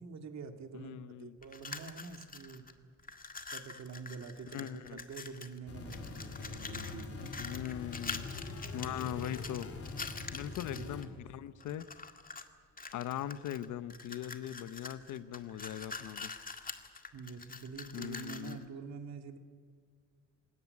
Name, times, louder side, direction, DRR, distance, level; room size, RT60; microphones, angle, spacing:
voice 1, 0.0-2.6 3.5-7.3 10.4-11.0 17.1-19.4, right 5 dB, 65° right, 6 dB, 2.2 m, -46 dB
voice 2, 0.7-1.4 4.5-5.0 7.4-8.3 8.7-9.7 10.3-11.8 12.9-16.3 17.9-18.7, left 11 dB, 80° left, 14 dB, 0.9 m, -40 dB
sound 1, 1.4-2.7 3.0-5.6 5.9-11.0 11.6-12.5 12.8-18.6, left 4 dB, 30° left, 1.9 m, -45 dB
sound 2, 5.7-11.0, left 4 dB, 50° left, 3.6 m, -43 dB
20.5 x 18.0 x 9.7 m, 2.1 s
cardioid pair, 90°, 30 cm